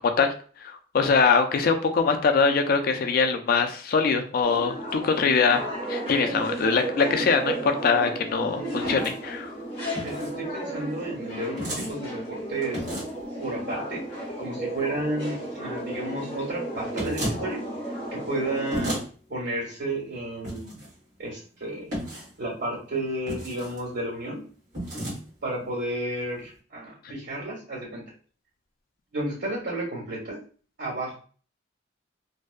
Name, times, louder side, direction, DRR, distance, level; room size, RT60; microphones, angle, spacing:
voice 1, 0.6-5.6 5.9-9.5, left 5 dB, 50° left, 6 dB, 0.3 m, -23 dB
sound 1, 4.4-19.0, right 1 dB, 30° left, 1.2 m, -34 dB
voice 2, 6.3-6.7 7.2-7.3 10.0-12.9 13.4-17.6 18.1-19.0 19.3-20.7 21.2-21.9 22.4-24.4 25.4-28.1 29.1-30.4 30.8-31.1, right 1 dB, 80° right, -5 dB, 1.3 m, -32 dB
sound 2, 8.8-9.2 9.9-10.3 11.6-11.9 12.7-13.2 16.9-17.4 18.7-19.0 20.4-20.9 21.9-22.3 23.3-23.8 24.7-25.2, equal, 40° right, 1.2 m, -32 dB
2.6 x 2.2 x 2.3 m, 0.41 s
head